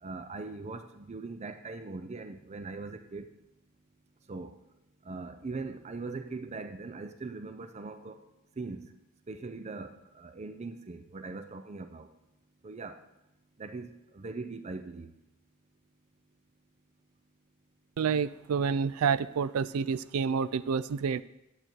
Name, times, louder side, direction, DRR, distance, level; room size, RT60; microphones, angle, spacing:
voice 1, 0.0-3.3 4.3-4.6 5.0-8.2 8.6-8.9 9.3-12.1 12.6-13.0 13.6-15.1, right 3 dB, 30° right, 9 dB, 0.5 m, -41 dB
voice 2, 18.0-21.2, right 6 dB, 85° right, 18 dB, 0.4 m, -29 dB
11.5 x 8.1 x 4.5 m, 0.91 s
head